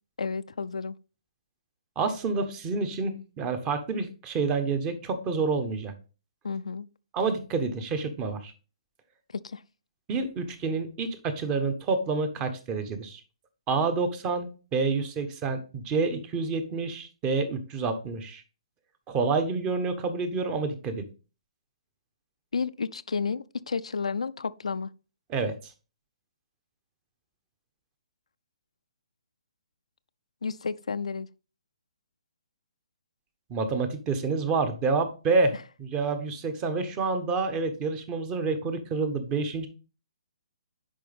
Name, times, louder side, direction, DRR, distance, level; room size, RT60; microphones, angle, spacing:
voice 1, 0.2-1.0 6.4-6.9 9.3-9.6 22.5-24.9 30.4-31.3, left 5 dB, 75° left, 0.5 m, -31 dB
voice 2, 2.0-5.9 7.1-8.5 10.1-13.2 13.7-18.4 19.1-21.1 25.3-25.7 33.5-39.7, right 4 dB, 25° right, 1.2 m, -28 dB
10.0 x 5.0 x 3.5 m
figure-of-eight pair, 135°, 3 cm